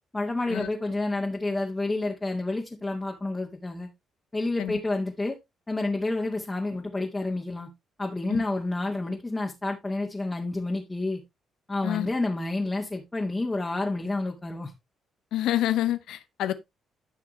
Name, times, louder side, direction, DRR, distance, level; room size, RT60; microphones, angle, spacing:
voice 1, 0.1-3.9 4.3-5.4 5.7-7.7 8.0-11.2 11.7-14.7, left 2 dB, 20° left, 2.1 m, -29 dB
voice 2, 15.3-16.5, left 12 dB, 70° left, 0.9 m, -27 dB
12.0 x 5.9 x 3.1 m
hypercardioid pair, 45°, 0 cm